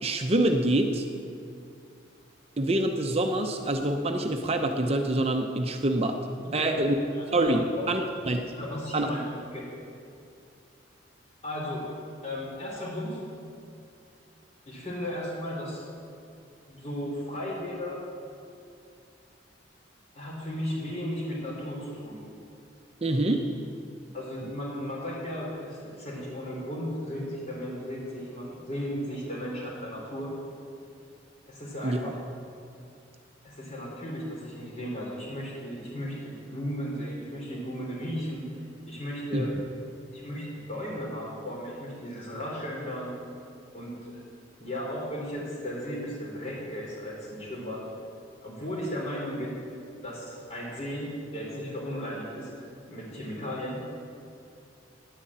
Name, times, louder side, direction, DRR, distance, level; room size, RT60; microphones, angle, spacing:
voice 1, 0.0-1.1 2.6-6.2 6.5-7.0 7.3-8.5 8.9-9.1 23.0-23.4 31.8-32.2 39.3-39.5, right 1 dB, 35° right, 4 dB, 0.7 m, -26 dB
voice 2, 7.1-7.9 8.5-9.2 9.5-9.7 11.4-11.8 12.2-13.2 14.7-15.9 16.7-18.0 20.1-22.2 24.1-30.3 31.5-32.1 33.4-38.4 38.9-39.5 40.1-43.1 43.7-44.2 44.6-47.8 48.4-49.6 50.0-53.8, equal, 40° left, -4 dB, 4.1 m, -35 dB
10.0 x 9.6 x 8.7 m, 2.5 s
head